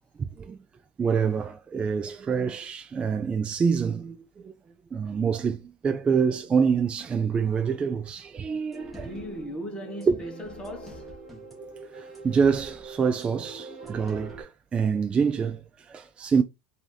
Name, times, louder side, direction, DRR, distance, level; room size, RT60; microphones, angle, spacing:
voice 1, 0.2-0.6 1.0-4.5 4.9-9.1 10.1-10.2 11.9-16.4, right 6 dB, 20° right, 0.4 m, -26 dB
sound 1, 8.7-14.4, right 2 dB, ahead, 1.7 m, -43 dB
voice 2, 8.9-11.2, equal, 15° left, 1.3 m, -38 dB
4.5 x 2.8 x 3.9 m
supercardioid pair, 135°, 6 cm